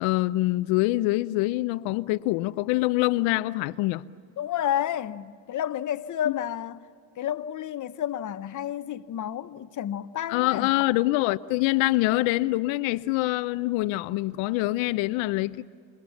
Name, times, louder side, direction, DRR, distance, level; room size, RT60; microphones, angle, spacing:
voice 1, 0.0-4.0 6.3-6.4 10.3-15.7, left 19 dB, 75° left, 0.7 m, -25 dB
voice 2, 4.4-6.8 7.2-10.7, left 10 dB, 40° left, 1.0 m, -30 dB
28.0 x 27.5 x 7.1 m
supercardioid pair, 90°, 46 cm